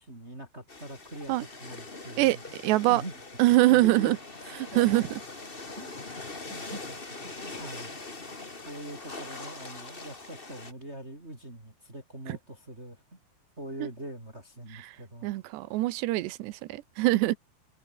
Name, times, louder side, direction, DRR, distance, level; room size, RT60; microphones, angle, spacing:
voice 1, 0.0-2.4 2.9-3.2 3.5-4.2 4.7-5.2 5.8-5.9 6.5-7.9 8.7-13.2 13.6-15.3, right 1 dB, 15° right, 5.2 m, -43 dB
sound 1, 0.7-10.7, left 3 dB, 25° left, 1.2 m, -42 dB
voice 2, 2.6-3.0 3.4-4.2 4.8-5.1 14.9-15.0 15.2-17.4, right 17 dB, 80° right, 3.0 m, -23 dB
omnidirectional pair, 5.1 m